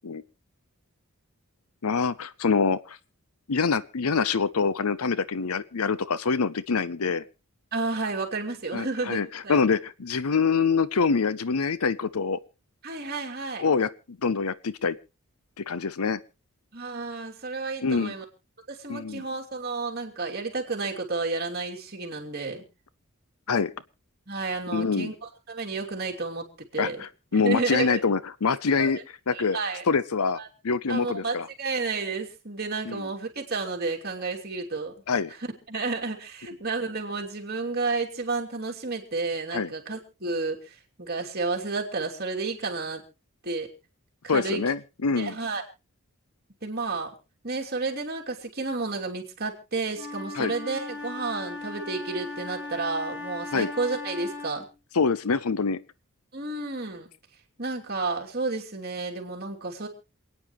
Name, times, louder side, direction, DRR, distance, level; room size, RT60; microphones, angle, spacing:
voice 1, 1.8-3.0 3.5-7.2 8.7-12.4 13.6-15.0 15.6-16.2 17.8-18.1 18.9-19.2 23.5-23.7 24.7-25.1 26.8-29.0 29.3-29.6 29.9-30.4 30.6-31.5 32.9-33.1 35.1-35.3 39.5-39.7 44.3-45.3 50.3-50.5 53.5-53.7 54.9-55.8, left 5 dB, 85° left, 17 dB, 0.7 m, -25 dB
voice 2, 7.7-9.6 12.8-13.7 16.7-18.2 18.7-22.6 24.3-27.0 27.3-28.0 28.8-28.9 29.3-29.8 30.4-30.5 30.9-34.9 35.7-43.0 43.4-43.7 44.3-44.6 45.1-45.6 46.6-47.1 47.4-54.7 56.3-57.1 57.6-59.9, right 3 dB, 45° right, 1 dB, 2.9 m, -31 dB
Wind instrument woodwind instrument, 49.9-54.8, left 2 dB, 60° left, 4.6 m, -38 dB
27.5 x 9.6 x 3.1 m, 0.31 s
head